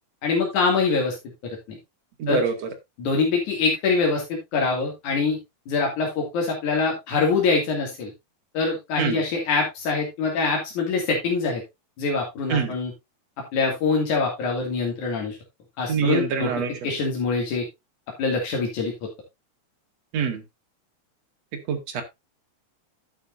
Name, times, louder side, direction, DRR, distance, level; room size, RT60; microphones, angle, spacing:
voice 1, 0.2-1.2 1.4-1.6 2.3-2.4 3.0-5.4 5.7-8.1 8.5-11.6 12.0-12.9 13.5-15.4 15.8-16.5 16.8-17.7 18.2-18.9, left 4 dB, 85° left, 0 dB, 3.7 m, -24 dB
voice 2, 2.2-2.7 9.0-9.2 12.5-12.7 15.9-16.7 20.1-20.4 21.7-22.0, right 6 dB, 60° right, 5 dB, 3.0 m, -24 dB
11.5 x 8.7 x 2.6 m, 0.21 s
omnidirectional pair, 3.4 m